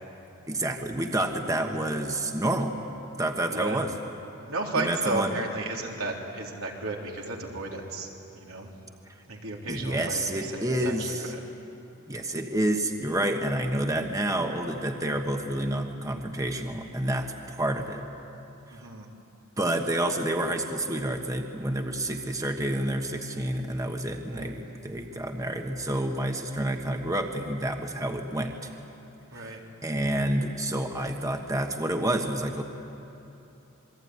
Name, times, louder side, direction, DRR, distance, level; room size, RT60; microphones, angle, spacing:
voice 1, 0.5-2.8 3.2-3.9 4.8-5.4 9.1-9.2 9.7-11.3 12.1-18.0 18.7-18.9 19.6-28.7 29.3-32.6, right 1 dB, 15° right, 4 dB, 1.3 m, -29 dB
voice 2, 1.6-1.9 3.5-3.8 4.5-8.1 8.3-8.7 9.3-11.4 18.7-19.1 24.3-24.5 29.3-29.6, right 2 dB, 80° right, -1 dB, 3.7 m, -33 dB
27.5 x 21.5 x 9.5 m, 2.9 s
head